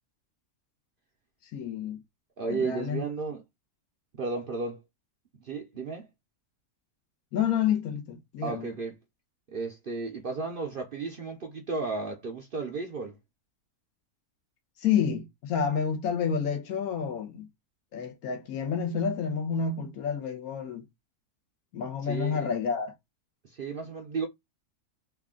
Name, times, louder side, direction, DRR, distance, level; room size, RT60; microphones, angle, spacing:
voice 1, 1.5-2.0 2.5-3.0 7.3-8.7 14.8-17.5 17.9-20.8 21.7-22.9, left 7 dB, 70° left, 1.4 m, -29 dB
voice 2, 2.4-3.4 4.2-4.8 5.4-6.1 8.4-8.9 9.5-13.2 22.0-22.5 23.4-24.3, right 4 dB, 60° right, 0.6 m, -33 dB
3.5 x 2.4 x 3.6 m
omnidirectional pair, 1.6 m